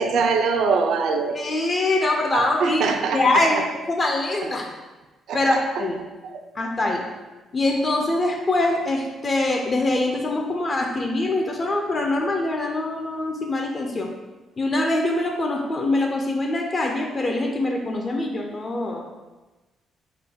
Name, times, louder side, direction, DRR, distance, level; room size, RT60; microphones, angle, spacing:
voice 1, 0.0-1.4 2.3-3.4 5.3-5.8 6.3-6.4, right 5 dB, 75° right, 5 dB, 0.3 m, -23 dB
voice 2, 1.3-3.6 3.9-4.7 5.3-6.0 6.6-7.0 7.5-14.1 14.6-19.0, left 2 dB, 35° left, 2 dB, 0.4 m, -23 dB
3.6 x 2.2 x 3.5 m, 1.2 s
cardioid pair, 90°, 0 cm